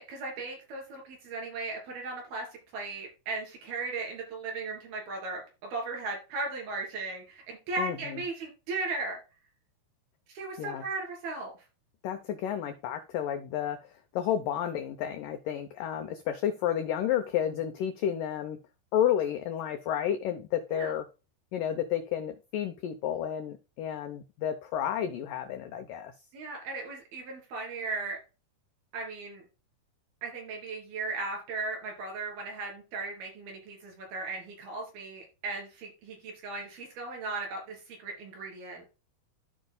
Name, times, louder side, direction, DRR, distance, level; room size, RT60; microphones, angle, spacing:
voice 1, 0.0-2.5 2.7-9.2 10.3-11.5 20.7-21.0 26.3-28.2 28.9-29.5 30.2-38.8, right 3 dB, 65° right, 0 dB, 4.9 m, -37 dB
voice 2, 7.8-8.2 10.6-10.8 12.0-18.6 18.9-21.1 21.5-26.1, left 10 dB, 85° left, 8 dB, 1.9 m, -31 dB
14.0 x 5.2 x 2.2 m, 0.30 s
omnidirectional pair, 4.8 m